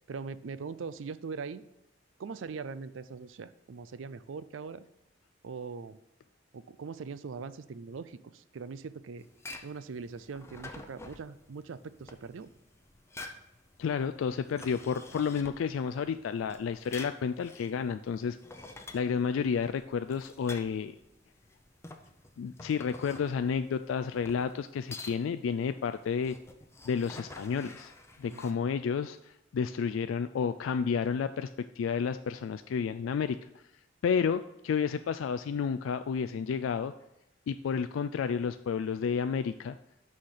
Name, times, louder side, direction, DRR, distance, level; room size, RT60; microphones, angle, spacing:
voice 1, 0.1-1.6 2.2-4.8 5.4-6.0 6.5-9.3 9.6-12.5 28.3-28.7, right 5 dB, 80° right, 15 dB, 0.4 m, -41 dB
sound 1, 9.2-28.5, left 2 dB, 15° left, 0.6 m, -49 dB
voice 2, 13.8-18.4 18.9-20.9 22.4-26.4 26.8-27.9 28.2-31.5 31.8-33.5 34.0-36.9 37.5-39.8, left 6 dB, 85° left, 11 dB, 0.3 m, -31 dB
6.4 x 5.7 x 6.6 m, 0.88 s
head